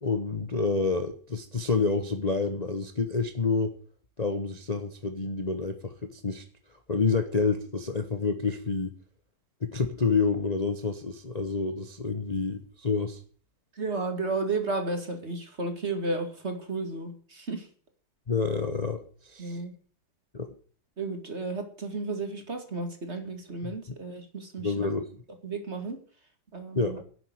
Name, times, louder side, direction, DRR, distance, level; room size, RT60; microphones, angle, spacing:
voice 1, 0.0-3.7 4.2-6.4 6.9-8.9 9.6-13.2 18.3-19.6 20.3-20.5 23.6-23.8 24.6-25.1 26.7-27.0, left 4 dB, 25° left, 6 dB, 1.0 m, -28 dB
voice 2, 13.7-17.7 19.4-19.7 21.0-24.9 25.4-26.0 26.5-27.0, right 3 dB, 35° right, 6 dB, 2.5 m, -33 dB
11.0 x 8.1 x 9.7 m, 0.43 s
omnidirectional pair, 2.1 m